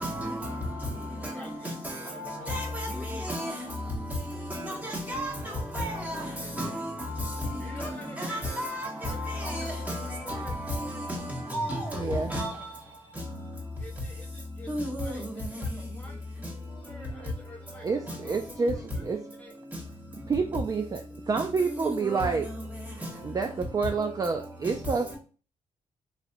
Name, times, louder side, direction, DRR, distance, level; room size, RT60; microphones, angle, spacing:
voice 1, 0.0-0.9 1.2-1.3 1.6-3.5 4.5-5.3 5.7-6.3 6.6-11.2 11.5-12.5 14.7-15.6 21.8-22.4, equal, 15° right, 1.5 m, -33 dB
voice 2, 1.2-3.4 5.4-6.5 7.6-8.6 9.0-11.0 13.8-18.8 19.4-19.5, left 1 dB, 10° left, 0.6 m, -48 dB
voice 3, 11.9-12.3 17.8-19.2 20.3-22.5 22.9-25.2, right 4 dB, 30° right, 0.4 m, -29 dB
3.0 x 2.8 x 2.6 m
cardioid pair, 80°, 13 cm